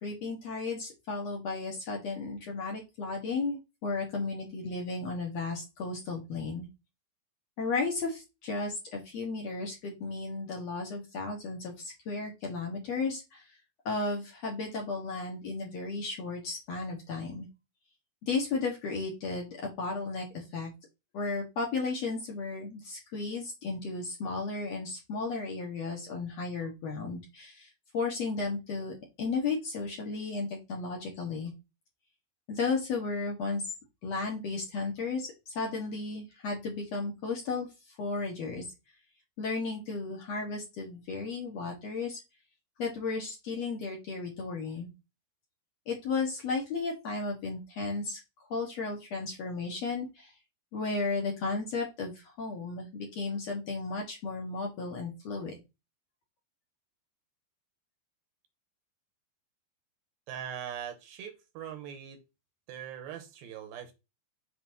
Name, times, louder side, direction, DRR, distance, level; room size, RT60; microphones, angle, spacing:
voice 1, 0.0-6.7 7.6-13.4 13.9-17.5 18.2-20.7 21.1-27.7 27.9-31.5 32.5-33.6 34.0-37.7 38.0-38.6 39.4-42.2 42.8-44.9 45.9-48.2 48.5-50.3 50.7-55.5, left 3 dB, 60° left, 1.9 m, -34 dB
voice 2, 60.3-62.2 62.7-63.9, right 9 dB, 80° right, 2.7 m, -41 dB
7.5 x 2.9 x 4.6 m
omnidirectional pair, 4.3 m